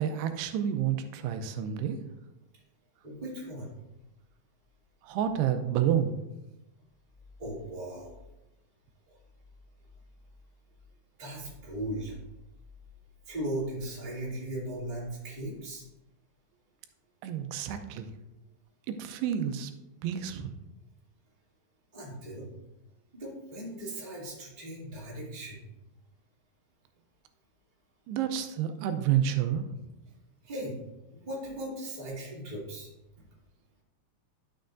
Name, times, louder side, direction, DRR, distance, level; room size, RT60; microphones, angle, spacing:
voice 1, 0.0-2.0 5.0-6.2 17.2-18.1 18.9-19.7 20.0-20.5 28.1-29.7, right 9 dB, 90° right, 7 dB, 2.7 m, -29 dB
voice 2, 3.0-3.7 7.4-8.2 9.1-9.2 11.2-12.2 13.3-15.8 21.9-22.5 23.1-25.6 30.4-30.8 31.1-32.9, right 1 dB, 15° right, -6 dB, 1.9 m, -38 dB
11.5 x 6.4 x 2.6 m, 0.95 s
omnidirectional pair, 4.6 m